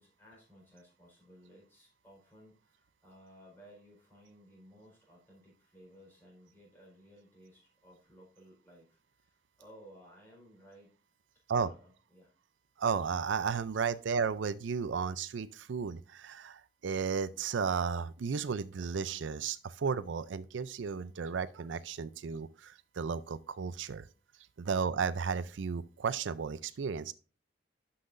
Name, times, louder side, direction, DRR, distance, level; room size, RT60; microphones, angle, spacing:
voice 1, 0.0-10.9 11.5-12.3, equal, 10° left, 4.4 m, -58 dB
voice 2, 12.8-24.1 24.6-27.1, right 6 dB, 85° right, 0.4 m, -34 dB
11.5 x 5.8 x 2.5 m
head